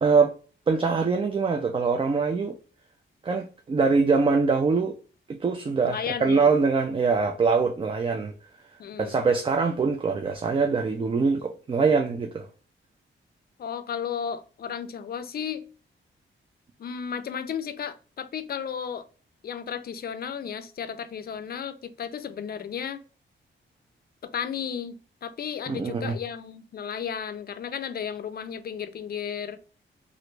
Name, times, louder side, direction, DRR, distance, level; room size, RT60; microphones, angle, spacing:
voice 1, 0.0-0.3 0.7-2.5 3.2-5.0 5.3-8.3 9.0-12.5 25.7-26.1, right 4 dB, 25° right, 0.4 m, -23 dB
voice 2, 5.8-6.5 8.8-9.2 13.6-15.6 16.8-19.1 19.4-23.0 24.3-29.6, left 7 dB, 50° left, 0.4 m, -34 dB
3.0 x 2.5 x 3.1 m
wide cardioid pair, 135°, 20 cm